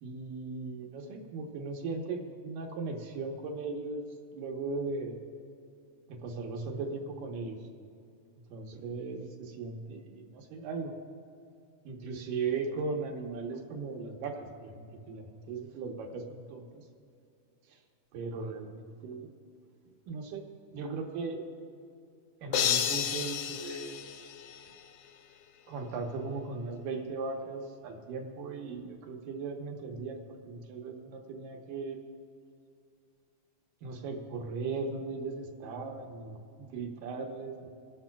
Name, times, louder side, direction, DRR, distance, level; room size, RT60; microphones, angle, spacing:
voice 1, 0.0-4.1 4.3-5.2 6.1-7.6 8.5-10.9 11.8-16.8 17.7-17.8 18.1-19.3 20.1-20.4 20.7-21.5 22.4-24.1 25.7-32.0 33.8-37.7, right 4 dB, 80° right, 2 dB, 2.6 m, -38 dB
sound 1, 22.5-24.9, left 9 dB, 85° left, 1.4 m, -31 dB
26.5 x 12.0 x 2.3 m, 2.5 s
omnidirectional pair, 3.8 m